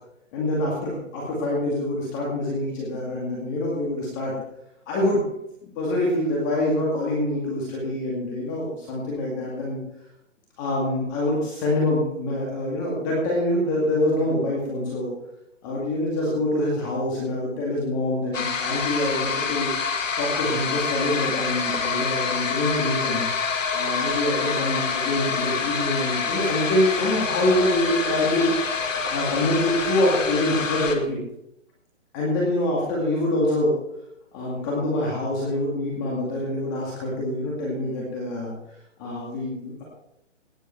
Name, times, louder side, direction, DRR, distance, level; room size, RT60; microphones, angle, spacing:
voice 1, 0.3-4.3 4.9-5.2 5.8-9.8 10.6-15.1 15.6-19.7 20.2-23.2 23.7-28.8 29.1-31.2 32.1-33.8 34.3-38.5 39.0-39.8, left 1 dB, 15° left, -3 dB, 2.1 m, -25 dB
sound 1, 18.3-31.0, left 5 dB, 80° left, 1.9 m, -27 dB
17.5 x 8.1 x 4.5 m, 0.80 s
hypercardioid pair, 170°, 38 cm